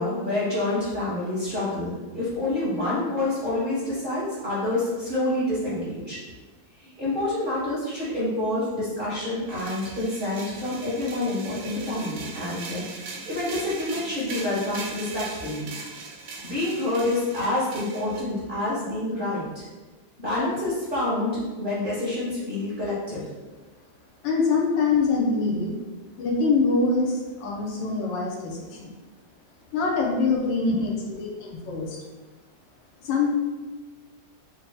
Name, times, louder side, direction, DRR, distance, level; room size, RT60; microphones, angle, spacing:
voice 1, 0.0-6.2 6.8-15.7 16.4-19.6 20.2-23.2 30.6-30.9, left 2 dB, 30° right, -9 dB, 1.1 m, -28 dB
sound 1, 9.5-18.2, right 4 dB, 75° right, 1.0 m, -39 dB
voice 2, 24.2-25.7 26.2-28.9 29.7-32.0 33.0-33.3, left 4 dB, 80° left, -1 dB, 1.3 m, -24 dB
5.3 x 2.7 x 2.2 m, 1.3 s
omnidirectional pair, 2.1 m